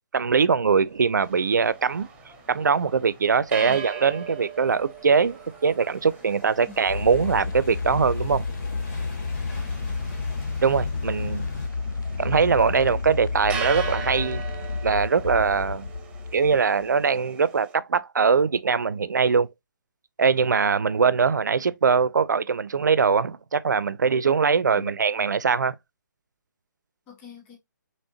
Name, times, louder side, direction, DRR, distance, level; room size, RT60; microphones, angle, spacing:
voice 1, 0.1-2.1 2.5-8.4 10.6-11.5 12.2-14.4 14.8-15.9 16.3-19.5 20.2-25.7, right 5 dB, 65° right, 0.4 m, -22 dB
sound 1, 0.8-11.7, left 5 dB, 40° left, 1.9 m, -46 dB
sound 2, 1.2-17.7, right 7 dB, 10° right, 0.5 m, -40 dB
sound 3, 6.9-16.9, left 4 dB, 65° left, 0.6 m, -31 dB
voice 2, 9.6-10.0 11.2-11.4 24.7-25.0 27.1-27.6, left 3 dB, 20° left, 1.3 m, -47 dB
4.3 x 3.0 x 2.8 m
figure-of-eight pair, 135°, 11 cm